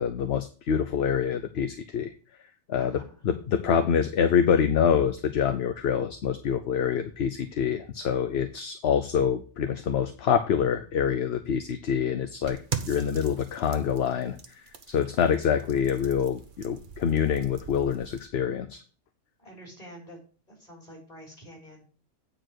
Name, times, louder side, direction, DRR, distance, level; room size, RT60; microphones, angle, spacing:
voice 1, 0.0-2.1 2.7-12.6 12.8-18.8, left 7 dB, 60° left, 9 dB, 0.9 m, -26 dB
voice 2, 2.7-3.2 19.4-20.2 20.5-21.8, equal, 30° left, -1 dB, 4.2 m, -47 dB
sound 1, 12.5-18.3, right 6 dB, 45° right, 1.1 m, -41 dB
9.1 x 4.6 x 6.1 m, 0.39 s
omnidirectional pair, 1.3 m